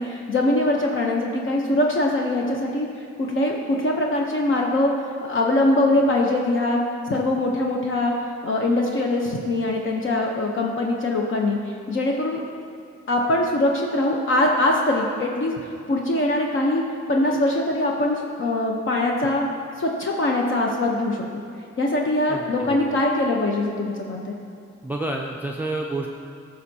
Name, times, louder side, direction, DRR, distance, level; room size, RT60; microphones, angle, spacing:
voice 1, 0.0-2.9 3.2-4.9 5.2-6.8 7.1-8.1 8.4-12.4 13.1-16.8 17.1-19.4 19.8-21.2 21.8-24.3, left 1 dB, 40° left, 0 dB, 0.9 m, -22 dB
voice 2, 22.3-22.9 24.8-26.2, right 2 dB, 5° right, 0 dB, 0.5 m, -29 dB
12.0 x 6.4 x 2.8 m, 2.5 s
cardioid pair, 90°, 30 cm